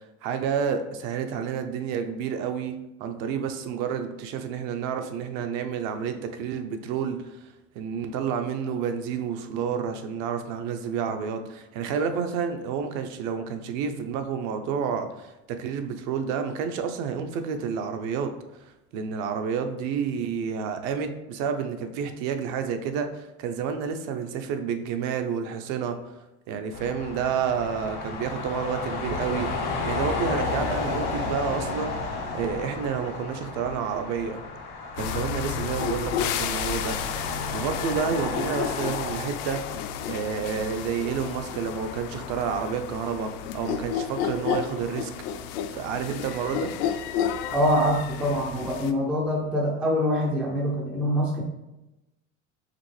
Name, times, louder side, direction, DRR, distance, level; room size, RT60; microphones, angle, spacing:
voice 1, 0.2-26.2 26.5-34.4 34.9-37.0 37.5-45.1 45.7-46.7, right 6 dB, 55° right, 7 dB, 0.5 m, -30 dB
sound 1, 26.7-39.1, left 3 dB, 85° left, 1.6 m, -32 dB
sound 2, 28.9-35.1, left 1 dB, 85° right, 1.5 m, -44 dB
sound 3, 35.0-48.9, left 8 dB, 70° left, 0.5 m, -32 dB
voice 2, 47.5-51.4, equal, 5° right, -1 dB, 0.3 m, -24 dB
5.0 x 3.3 x 3.2 m, 0.96 s
cardioid pair, 175°, 31 cm